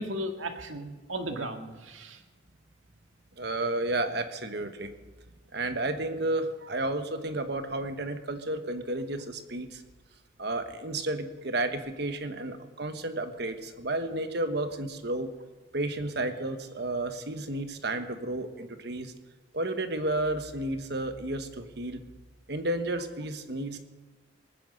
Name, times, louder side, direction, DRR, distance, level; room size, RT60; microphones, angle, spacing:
voice 1, 0.0-2.2, right 1 dB, 90° right, 5 dB, 1.8 m, -35 dB
voice 2, 3.4-4.9 5.5-9.8 10.4-15.3 15.7-19.1 19.5-22.0 22.5-23.8, right 2 dB, 55° right, 8 dB, 1.2 m, -32 dB
19.0 x 9.5 x 6.7 m, 1.3 s
head